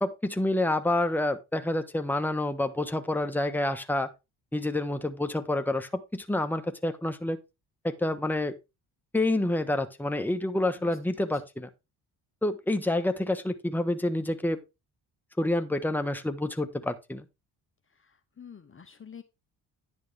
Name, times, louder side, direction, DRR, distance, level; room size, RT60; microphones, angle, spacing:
voice 1, 0.0-4.1 4.5-7.4 7.8-8.5 9.1-11.7 12.4-14.6 15.4-17.2, left 1 dB, 5° left, 1.2 m, -28 dB
voice 2, 18.0-19.2, left 7 dB, 30° left, 1.0 m, -48 dB
10.0 x 6.4 x 3.4 m
supercardioid pair, 70°, 42 cm